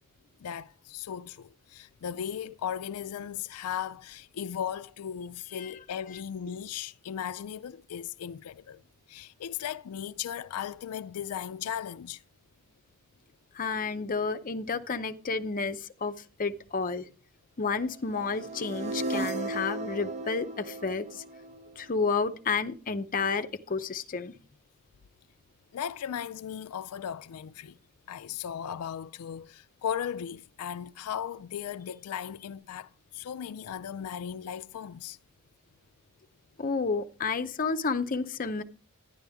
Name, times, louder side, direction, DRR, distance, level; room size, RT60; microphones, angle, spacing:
voice 1, 0.4-8.8 9.1-12.2 25.7-27.8 28.1-35.2, left 9 dB, 85° left, 0.4 m, -37 dB
voice 2, 13.5-16.1 16.4-17.1 17.6-21.2 21.8-24.3 36.6-38.6, left 4 dB, 40° left, 0.6 m, -31 dB
sound 1, 18.1-22.2, right 2 dB, 30° right, 0.8 m, -36 dB
10.5 x 10.5 x 3.5 m
head